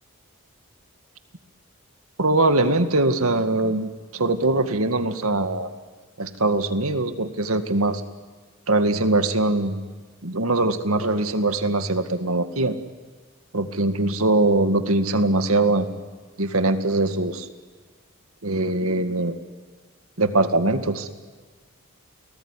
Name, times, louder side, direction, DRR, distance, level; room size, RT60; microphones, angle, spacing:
voice 1, 2.2-5.7 6.2-8.0 8.7-9.8 10.2-12.8 13.5-15.9 16.4-17.5 18.4-19.3 20.2-21.1, right 2 dB, 80° right, 9 dB, 2.0 m, -22 dB
29.5 x 19.5 x 9.9 m, 1.5 s
head